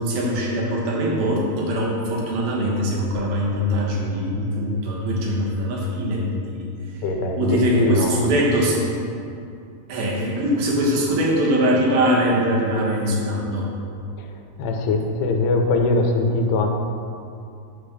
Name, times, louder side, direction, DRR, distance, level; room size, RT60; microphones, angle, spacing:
voice 1, 0.0-6.6 6.9-7.0 7.4-8.9 9.9-13.7, equal, 70° right, -3 dB, 2.9 m, -22 dB
voice 2, 7.0-8.3 14.2-16.7, left 2 dB, 90° left, 3 dB, 2.8 m, -22 dB
9.2 x 3.4 x 6.5 m, 2.5 s
omnidirectional pair, 4.5 m